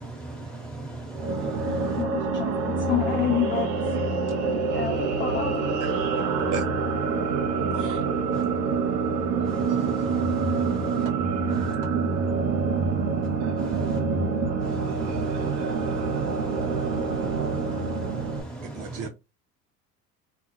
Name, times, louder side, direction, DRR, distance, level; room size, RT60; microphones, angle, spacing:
voice 1, 0.0-2.0 8.3-8.4 9.4-11.1 11.5-11.8 13.6-14.0 14.6-19.1, right 2 dB, ahead, 1.1 m, -38 dB
sound 1, 1.1-18.4, right 4 dB, 75° right, 0.7 m, -26 dB
voice 2, 2.0-3.7 4.4-5.8 6.4-6.6, left 10 dB, 25° left, 0.4 m, -29 dB
voice 3, 5.8-6.2 6.5-6.6 7.7-8.0 18.7-19.1, right 4 dB, 40° right, 0.5 m, -34 dB
2.3 x 2.2 x 2.7 m
hypercardioid pair, 70°, 49 cm